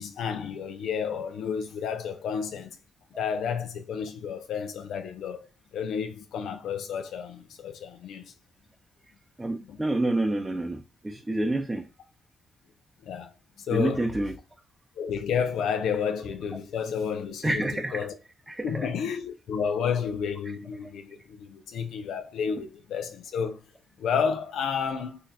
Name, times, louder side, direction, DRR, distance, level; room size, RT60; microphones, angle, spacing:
voice 1, 0.0-2.8 3.2-5.5 5.7-8.3 9.6-9.8 13.0-13.3 13.6-14.1 15.0-18.1 18.6-23.6 24.0-25.2, left 7 dB, 85° left, 0.4 m, -31 dB
voice 2, 9.4-11.8 13.7-14.3 17.4-18.1 18.5-18.9, right 2 dB, 15° right, 0.6 m, -28 dB
3.9 x 2.4 x 2.6 m
cardioid pair, 80°, 0 cm